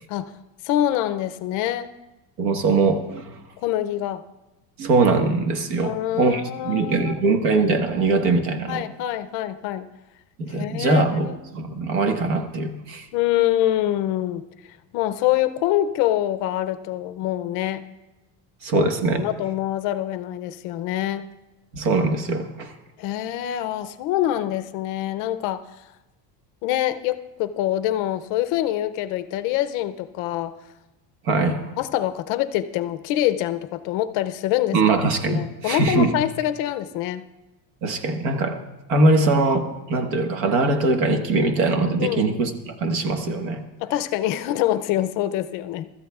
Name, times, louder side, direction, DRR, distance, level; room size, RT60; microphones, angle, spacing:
voice 1, 0.6-1.9 3.6-4.2 5.8-7.2 8.7-9.9 10.6-11.4 13.1-14.5 14.9-17.8 18.7-18.9 19.1-21.2 23.0-25.6 26.6-30.5 31.8-34.8 35.3-37.2 42.0-42.3 43.8-45.9, left 13 dB, 45° left, 11 dB, 0.4 m, -25 dB
voice 2, 2.4-3.4 4.8-8.9 10.4-13.1 18.6-19.2 21.7-22.7 31.2-31.7 34.7-36.1 37.8-38.6 38.9-43.6, right 3 dB, 90° right, 7 dB, 1.5 m, -22 dB
24.5 x 13.5 x 2.3 m, 1.0 s
cardioid pair, 180°, 46 cm